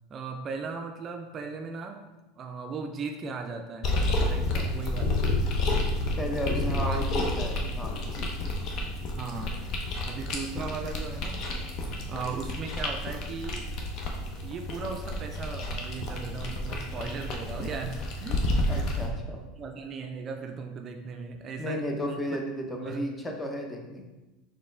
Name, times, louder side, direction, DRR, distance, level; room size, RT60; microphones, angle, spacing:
voice 1, 0.1-2.1 2.4-4.0 4.3-5.3 6.4-7.0 8.6-8.7 9.2-9.6 10.1-11.5 12.1-13.8 14.4-18.5 18.7-18.9 19.3-22.4 22.8-23.1, right 4 dB, 40° right, 4 dB, 0.4 m, -37 dB
sound 1, 3.8-19.1, left 1 dB, 50° left, 0.7 m, -30 dB
voice 2, 6.2-8.5 18.7-19.4 21.6-24.1, equal, 15° left, 2 dB, 0.7 m, -34 dB
4.1 x 3.2 x 3.2 m, 1.1 s
hypercardioid pair, 85°, 0 cm